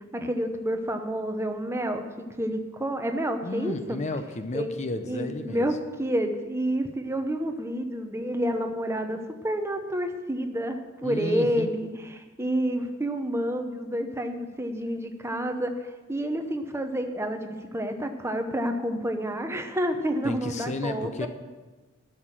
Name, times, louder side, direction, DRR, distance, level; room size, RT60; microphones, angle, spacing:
voice 1, 0.1-4.0 4.5-4.7 5.1-9.2 9.4-21.3, equal, 15° right, 6 dB, 0.8 m, -29 dB
voice 2, 3.4-5.8 11.0-11.7 20.2-21.3, left 2 dB, 35° left, 9 dB, 0.6 m, -32 dB
12.5 x 6.6 x 7.5 m, 1.3 s
head